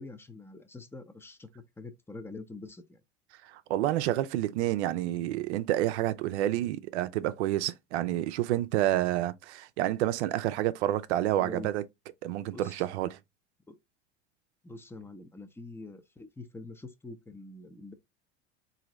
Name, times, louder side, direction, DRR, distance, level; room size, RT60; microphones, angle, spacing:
voice 1, 0.0-1.5 1.8-3.0 11.4-11.7 12.5-12.8 13.7-13.8 14.6-17.9, left 3 dB, 5° left, 0.6 m, -45 dB
voice 2, 3.4-11.8 12.2-13.2, right 14 dB, 75° right, 0.5 m, -29 dB
3.8 x 2.7 x 3.0 m
hypercardioid pair, 85°, 34 cm